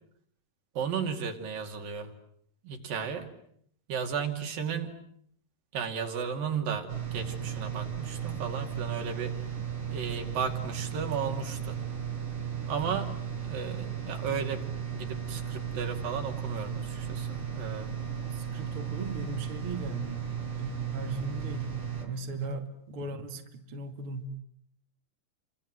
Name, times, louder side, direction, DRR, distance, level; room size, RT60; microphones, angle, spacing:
voice 1, 0.8-2.1 2.6-3.3 3.9-5.0 5.7-9.3 9.9-11.8 12.7-13.1 13.5-18.0 22.3-22.6, right 6 dB, 80° right, 5 dB, 4.4 m, -34 dB
sound 1, 6.9-22.0, right 8 dB, 65° right, 5.9 m, -35 dB
voice 2, 18.1-21.7 22.0-24.4, right 3 dB, 45° right, 5 dB, 2.9 m, -38 dB
30.0 x 26.0 x 7.8 m, 0.68 s
omnidirectional pair, 3.9 m